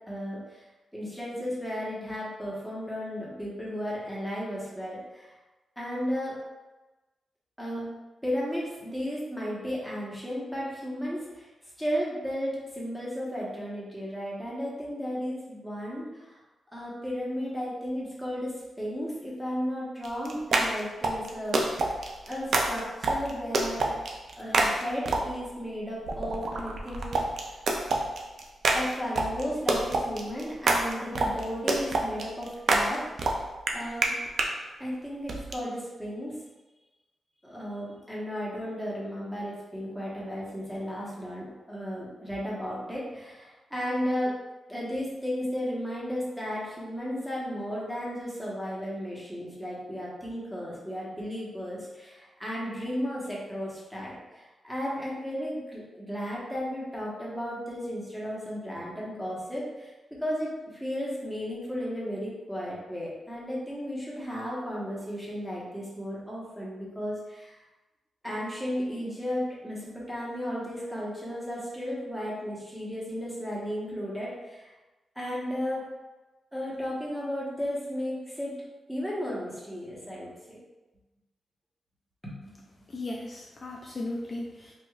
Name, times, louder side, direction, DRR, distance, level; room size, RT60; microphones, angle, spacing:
voice 1, 0.1-0.7 0.9-5.3 5.8-6.4 7.6-7.9 8.2-11.5 11.8-16.4 16.7-23.9 24.4-27.2 28.7-33.4 33.7-34.1 34.8-36.4 37.4-44.4 44.7-67.6 68.2-74.7 75.1-75.9 76.5-78.5 78.9-80.6 82.2-82.5, equal, ahead, -6 dB, 1.0 m, -34 dB
sound 1, 20.0-25.5 26.1-34.5 35.3-35.6, right 2 dB, 60° right, 0.4 m, -28 dB
voice 2, 82.9-84.7, left 2 dB, 35° left, -2 dB, 0.3 m, -36 dB
4.7 x 2.4 x 2.3 m, 1.1 s
wide cardioid pair, 130°, 0 cm